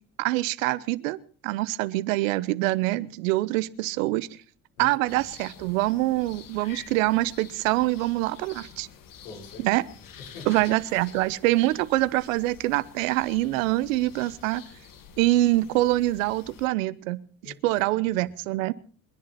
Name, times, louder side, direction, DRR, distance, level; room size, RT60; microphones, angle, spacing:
voice 1, 0.2-1.2 1.4-4.3 4.8-8.9 9.6-9.8 10.5-14.6 15.2-18.7, right 18 dB, 90° right, 18 dB, 0.9 m, -25 dB
voice 2, 4.8-5.2 9.2-9.7 10.2-10.5 17.4-18.3, left 4 dB, 90° left, 2 dB, 5.3 m, -45 dB
sound 1, 5.1-16.7, left 7 dB, 55° left, 2.1 m, -48 dB
28.0 x 10.5 x 4.2 m, 0.43 s
hypercardioid pair, 65°, 39 cm